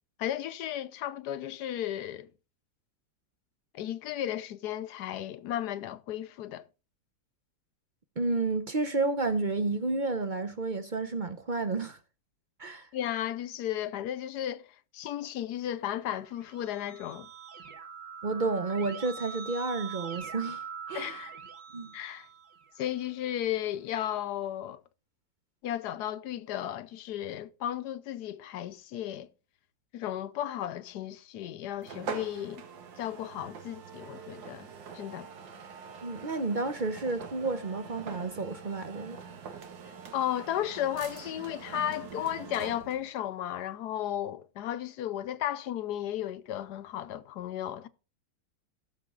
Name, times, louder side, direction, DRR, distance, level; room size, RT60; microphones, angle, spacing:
voice 1, 0.2-2.3 3.7-6.6 12.9-14.7 14.9-17.3 20.9-21.3 21.9-22.3 22.8-24.8 25.6-29.3 29.9-32.7 33.0-35.3 40.1-47.9, left 11 dB, 70° left, 1.1 m, -34 dB
voice 2, 8.2-12.0 12.6-12.9 18.2-20.6 20.9-21.1 21.7-21.9 36.0-39.2, right 3 dB, 50° right, 0.5 m, -31 dB
Keyboard (musical), 16.2-22.8, right 6 dB, 70° right, 2.0 m, -43 dB
sound 1, 31.8-43.1, right 6 dB, 90° right, 1.9 m, -44 dB
15.5 x 6.7 x 3.7 m
omnidirectional pair, 2.0 m